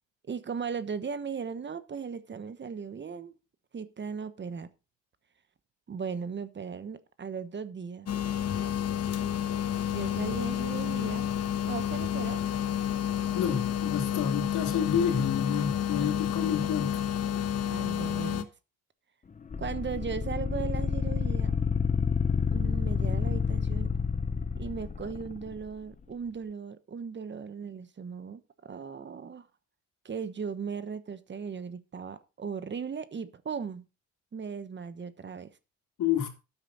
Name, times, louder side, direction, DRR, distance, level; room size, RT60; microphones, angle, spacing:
voice 1, 0.2-3.3 3.7-4.7 5.9-8.1 9.9-11.4 11.7-12.4 16.0-16.1 17.7-18.5 19.6-21.6 22.5-23.9 24.6-29.5 30.0-33.8 34.3-35.5, right 6 dB, 35° right, 1.1 m, -37 dB
sound 1, 8.1-18.4, left 10 dB, 55° left, 1.2 m, -30 dB
voice 2, 13.3-17.0 36.0-36.3, left 8 dB, 80° left, 2.8 m, -29 dB
sound 2, 19.5-25.7, left 5 dB, 25° left, 0.7 m, -29 dB
12.5 x 8.3 x 4.0 m
cardioid pair, 90°, 30 cm